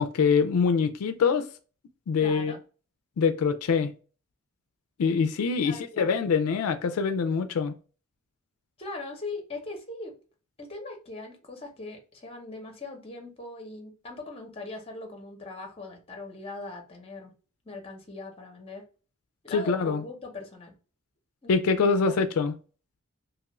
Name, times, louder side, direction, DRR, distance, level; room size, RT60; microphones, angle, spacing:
voice 1, 0.0-1.5 2.1-2.5 3.2-3.9 5.0-7.7 19.5-20.0 21.5-22.5, left 5 dB, 80° left, 0.4 m, -24 dB
voice 2, 2.2-2.6 5.6-6.2 8.8-10.1 10.6-17.3 17.6-18.8 19.4-20.7 21.4-22.2, left 2 dB, 25° left, 0.7 m, -40 dB
2.8 x 2.4 x 3.0 m
head